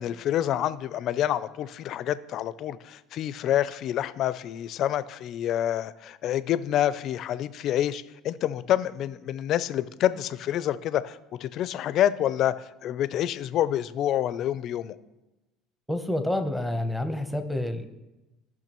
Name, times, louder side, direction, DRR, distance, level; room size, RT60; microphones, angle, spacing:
voice 1, 0.0-14.9, left 11 dB, 50° left, 15 dB, 0.4 m, -27 dB
voice 2, 15.9-17.9, left 1 dB, ahead, 7 dB, 0.8 m, -28 dB
16.5 x 5.9 x 3.0 m, 1.0 s
cardioid pair, 125°, 0 cm